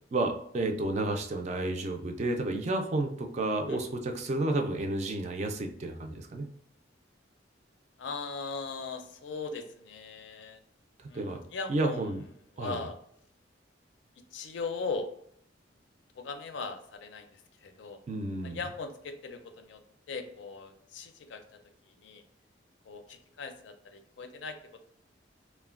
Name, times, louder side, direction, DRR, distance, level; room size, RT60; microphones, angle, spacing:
voice 1, 0.1-6.5 11.0-11.4 11.7-12.2 12.6-12.8 18.1-18.6, right 2 dB, 35° right, 4 dB, 0.3 m, -31 dB
voice 2, 8.0-10.6 11.1-12.1 12.5-13.0 14.3-15.1 16.1-18.0 18.4-19.8 20.1-22.2 22.8-24.8, left 4 dB, 80° left, 7 dB, 0.4 m, -39 dB
3.1 x 2.1 x 2.3 m, 0.69 s
head